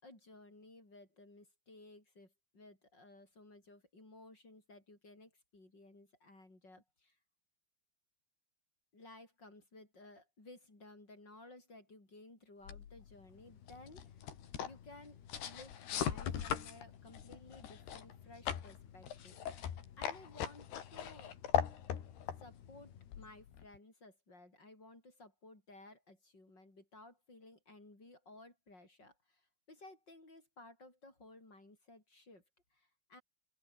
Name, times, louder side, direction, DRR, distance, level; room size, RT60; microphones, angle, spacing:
voice 1, 0.0-7.2 8.9-14.2 14.6-21.3 22.4-32.4 32.7-33.2, left 2 dB, 25° left, 7.6 m, -57 dB
sound 1, 12.6-23.8, left 9 dB, 80° left, 4.7 m, -41 dB
open air
omnidirectional pair, 4.6 m